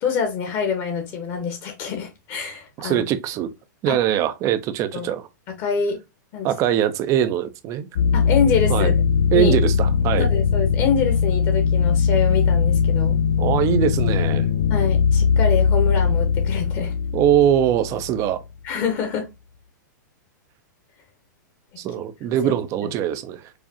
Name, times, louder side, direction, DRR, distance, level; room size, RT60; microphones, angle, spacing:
voice 1, 0.0-3.0 3.9-4.0 4.9-5.1 5.6-6.0 6.3-6.5 8.1-8.9 9.3-9.5 10.2-13.2 14.7-16.9 18.6-19.3 22.3-22.5 22.8-22.9, left 6 dB, 35° left, 1.0 m, -25 dB
voice 2, 2.8-3.5 3.8-5.3 6.4-7.9 8.7-8.9 9.3-10.3 13.4-14.5 17.1-18.4 21.8-23.5, right 10 dB, 30° right, 0.5 m, -22 dB
sound 1, 8.0-18.4, left 6 dB, 85° left, 0.4 m, -20 dB
4.8 x 2.4 x 2.7 m
hypercardioid pair, 140°, 10 cm